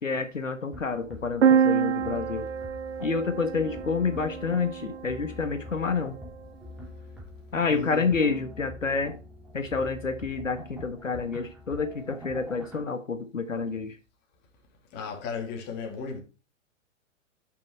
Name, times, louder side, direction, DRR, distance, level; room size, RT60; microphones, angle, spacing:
voice 1, 0.0-2.5 3.0-6.2 7.5-9.2 9.5-14.0, left 4 dB, 80° left, 1.3 m, -29 dB
sound 1, 0.7-12.8, left 2 dB, ahead, 2.5 m, -45 dB
sound 2, 1.4-5.2, right 7 dB, 60° right, 0.7 m, -26 dB
voice 2, 7.7-8.0 14.9-16.2, left 5 dB, 25° left, 2.8 m, -35 dB
10.5 x 6.2 x 4.4 m
figure-of-eight pair, 115°, 38 cm